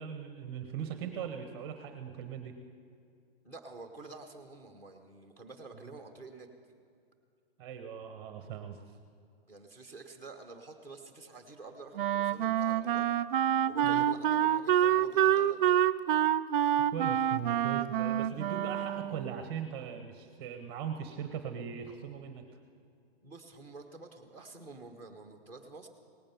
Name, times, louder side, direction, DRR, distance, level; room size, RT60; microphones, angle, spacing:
voice 1, 0.0-2.6 7.6-8.8 13.8-14.1 16.9-22.5, right 8 dB, 25° right, 8 dB, 0.8 m, -39 dB
voice 2, 3.4-6.5 9.5-13.1 13.7-15.6 23.2-25.9, right 3 dB, 5° left, 5 dB, 0.9 m, -49 dB
Wind instrument woodwind instrument, 11.9-19.3, right 11 dB, 55° right, 0.4 m, -27 dB
18.0 x 8.8 x 7.1 m, 2.4 s
hypercardioid pair, 160°, 32 cm